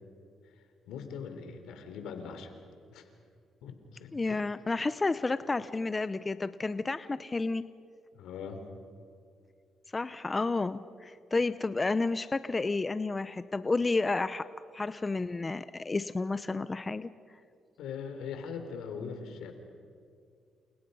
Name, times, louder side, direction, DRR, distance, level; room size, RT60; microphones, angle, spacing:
voice 1, 0.9-2.5 2.9-3.1 3.6-4.4 8.1-8.7 17.8-19.5, left 6 dB, 85° left, 6 dB, 3.6 m, -41 dB
voice 2, 4.1-7.6 9.9-14.5 14.7-17.1, left 3 dB, 25° left, 14 dB, 0.7 m, -31 dB
29.5 x 29.5 x 5.6 m, 2.3 s
cardioid pair, 90°, 0 cm